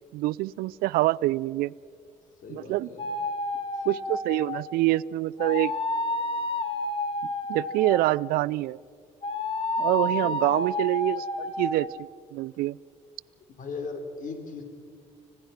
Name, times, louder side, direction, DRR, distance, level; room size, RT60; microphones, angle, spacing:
voice 1, 0.1-1.7 2.5-2.9 3.9-5.7 7.5-8.8 9.8-11.9 12.3-12.8, right 18 dB, 75° right, 22 dB, 0.4 m, -26 dB
voice 2, 2.4-3.1 3.7-3.9 9.8-10.5 13.5-14.6, left 4 dB, 60° left, 6 dB, 3.5 m, -39 dB
sound 1, 3.0-4.7 5.4-8.3 9.2-11.9, left 2 dB, 35° left, 2.1 m, -30 dB
25.5 x 17.5 x 5.8 m, 2.2 s
supercardioid pair, 65°, 15 cm